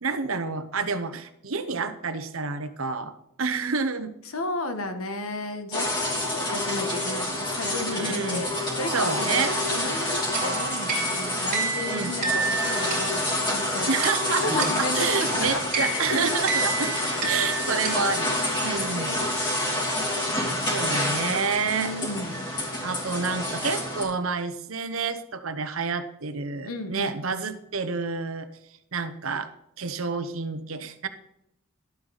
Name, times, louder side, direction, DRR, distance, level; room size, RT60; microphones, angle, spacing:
voice 1, 0.0-4.1 7.9-8.5 8.9-9.5 11.9-12.1 13.9-16.9 17.2-18.3 18.6-19.2 20.7-21.9 22.8-28.5 28.9-29.5 29.8-31.1, right 4 dB, 75° right, 10 dB, 1.0 m, -29 dB
voice 2, 4.2-9.4 9.7-13.9 14.4-16.4 16.9-17.5 18.6-19.3 20.0-22.5 26.6-27.2, left 2 dB, 85° left, 8 dB, 1.4 m, -34 dB
sound 1, 5.7-24.0, left 1 dB, 20° left, 2.9 m, -28 dB
sound 2, 10.3-18.7, right 4 dB, 40° right, 3.2 m, -31 dB
11.5 x 8.0 x 4.1 m, 0.80 s
head